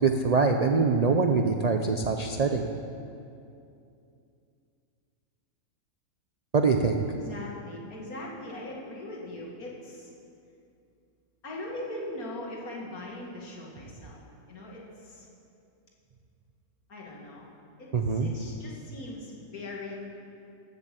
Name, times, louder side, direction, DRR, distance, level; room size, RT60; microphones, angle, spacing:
voice 1, 0.0-2.7 6.5-7.0 17.9-18.3, right 4 dB, 90° right, 4 dB, 0.3 m, -24 dB
voice 2, 7.1-10.1 11.4-14.2 14.5-15.3 16.9-17.5 17.8-19.9, left 1 dB, 75° left, -2 dB, 2.5 m, -40 dB
13.0 x 7.8 x 7.5 m, 2.6 s
omnidirectional pair, 1.5 m